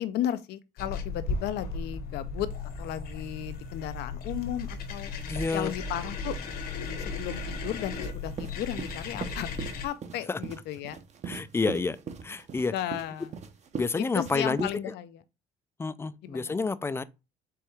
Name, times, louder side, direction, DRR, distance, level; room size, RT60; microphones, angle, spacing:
voice 1, 0.0-2.5 2.8-5.1 5.5-6.4 7.0-9.5 9.8-11.0 12.7-13.3 13.9-15.2 16.2-16.6, left 11 dB, 80° left, 0.5 m, -34 dB
sound 1, 0.8-9.9, left 3 dB, 60° left, 1.0 m, -36 dB
voice 2, 5.3-5.7 10.3-10.4 11.3-12.0 12.2-12.7 13.8-14.7 15.8-17.0, left 4 dB, 15° left, 0.3 m, -29 dB
sound 2, 8.0-14.7, right 6 dB, 40° right, 0.8 m, -40 dB
4.6 x 3.4 x 3.3 m
cardioid pair, 110°, 17 cm